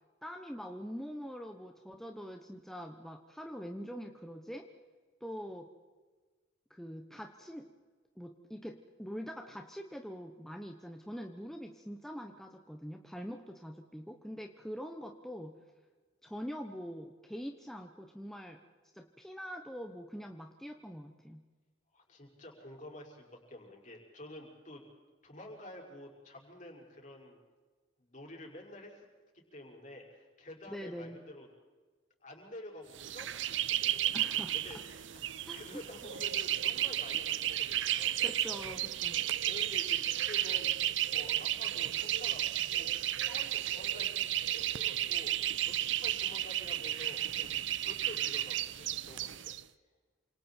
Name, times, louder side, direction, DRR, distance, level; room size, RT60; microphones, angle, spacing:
voice 1, 0.2-4.7 5.2-5.7 6.7-7.7 8.2-15.6 16.2-18.6 18.9-21.4 30.7-31.2 34.1-34.6 35.5-35.6 38.2-39.2, equal, ahead, 3 dB, 1.1 m, -44 dB
voice 2, 21.9-24.8 25.2-27.4 28.0-29.1 29.3-31.5 32.2-38.6 39.4-40.8 41.0-42.9 43.3-47.5 47.8-49.5, left 1 dB, 40° left, -1 dB, 5.7 m, -50 dB
sound 1, 33.0-49.6, right 12 dB, 70° right, 0.7 m, -33 dB
28.5 x 27.0 x 4.5 m, 1.4 s
head